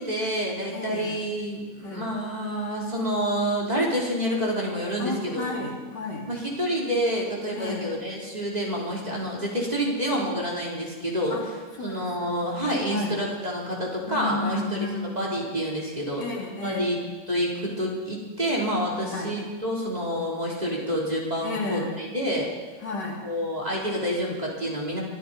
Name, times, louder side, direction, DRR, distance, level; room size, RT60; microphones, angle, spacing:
voice 1, 0.0-5.7 6.3-11.4 11.8-16.2 16.6-22.5 23.2-25.0, equal, 20° right, -4 dB, 3.4 m, -28 dB
voice 2, 0.7-1.2 1.8-2.1 5.0-6.3 7.5-7.9 11.3-11.5 11.8-12.4 12.9-13.2 14.1-15.1 16.2-16.9 19.1-19.3 21.4-22.0 22.8-23.2, left 3 dB, 90° left, -2 dB, 3.3 m, -32 dB
23.0 x 13.0 x 4.1 m, 1.4 s
omnidirectional pair, 1.8 m